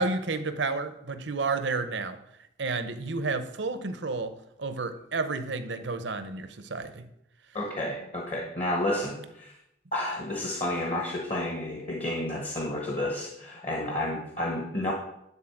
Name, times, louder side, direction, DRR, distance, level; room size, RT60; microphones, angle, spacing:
voice 1, 0.0-2.2 2.6-7.1, right 3 dB, 65° right, 10 dB, 0.8 m, -31 dB
voice 2, 7.5-9.6 9.9-14.9, left 1 dB, 35° left, 0 dB, 1.2 m, -31 dB
10.0 x 4.1 x 7.2 m, 0.80 s
head